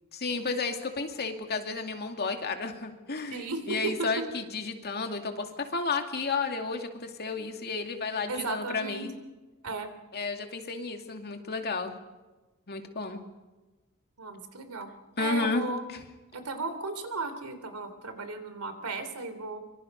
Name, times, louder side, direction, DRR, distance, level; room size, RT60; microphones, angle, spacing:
voice 1, 0.1-9.1 10.1-11.9 12.7-13.2 15.2-15.7 15.9-16.0, left 4 dB, 45° left, 5 dB, 2.5 m, -32 dB
voice 2, 3.3-3.6 8.3-9.1 9.6-9.9 14.2-14.9 15.2-16.0 16.3-19.6, right 3 dB, 80° right, 9 dB, 3.3 m, -35 dB
25.0 x 24.5 x 5.5 m, 1.1 s
head